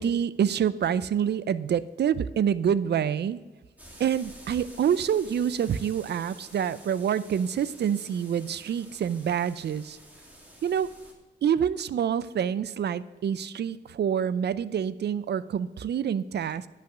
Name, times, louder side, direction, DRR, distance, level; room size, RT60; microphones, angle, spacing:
voice 1, 0.0-3.4 4.0-10.0 10.6-10.9 11.4-16.7, right 8 dB, 65° right, 16 dB, 0.5 m, -27 dB
Dry Leafy Gusts, 3.8-11.1, right 1 dB, 10° right, 2.5 m, -50 dB
10.0 x 5.7 x 6.1 m, 1.3 s
cardioid pair, 80°, 18 cm